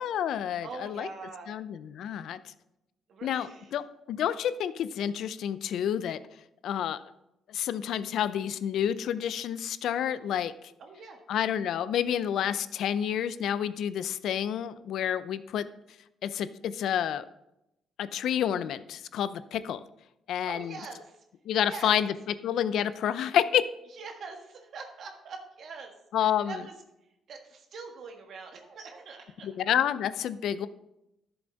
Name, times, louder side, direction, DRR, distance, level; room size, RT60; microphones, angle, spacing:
voice 1, 0.0-1.1 1.5-2.5 3.2-3.8 4.1-6.2 6.6-7.0 7.5-10.5 11.3-15.6 16.2-17.2 18.0-19.8 20.3-20.7 21.5-22.1 22.4-23.6 26.1-26.6 29.4-30.7, left 9 dB, 75° left, 14 dB, 0.5 m, -29 dB
voice 2, 0.6-1.5 3.1-3.8 10.8-11.2 20.5-21.2 21.7-22.0 23.9-25.9 26.2-26.8 27.3-29.5, right 4 dB, 65° right, 3 dB, 1.6 m, -43 dB
11.0 x 7.0 x 4.0 m, 0.87 s
cardioid pair, 90°, 0 cm